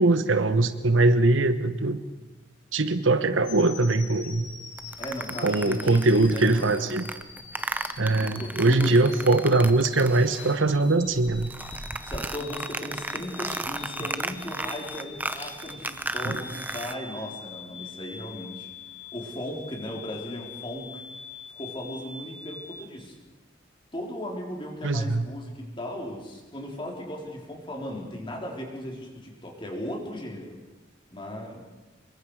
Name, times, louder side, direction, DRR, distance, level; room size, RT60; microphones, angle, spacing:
voice 1, 0.0-2.0 2.7-4.4 5.4-7.1 8.0-11.5 16.2-16.4 24.8-25.3, right 2 dB, 90° right, 11 dB, 1.2 m, -22 dB
sound 1, 3.4-22.8, left 5 dB, 70° left, 6.1 m, -44 dB
sound 2, 4.8-10.8 11.1-16.9, right 2 dB, 10° right, 0.7 m, -35 dB
voice 2, 5.0-6.9 8.2-9.0 12.0-18.7 19.1-21.0 21.5-23.2 23.9-30.6 31.1-31.6, left 1 dB, 25° left, 0 dB, 4.0 m, -37 dB
25.5 x 23.0 x 4.9 m, 1.1 s
head